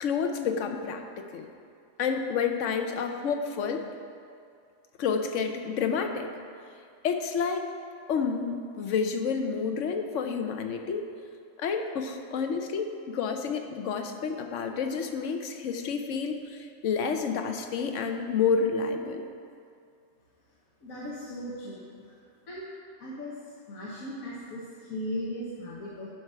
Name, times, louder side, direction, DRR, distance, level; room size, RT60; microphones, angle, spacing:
voice 1, 0.0-1.0 1.3-1.5 2.0-3.8 5.0-6.3 7.0-7.7 8.1-11.1 11.6-19.3, left 5 dB, 70° left, 5 dB, 1.0 m, -29 dB
voice 2, 20.8-21.8 22.5-22.7 23.0-23.4 23.7-26.1, equal, 85° left, -6 dB, 1.6 m, -37 dB
11.5 x 4.8 x 5.6 m, 2.4 s
omnidirectional pair, 1.4 m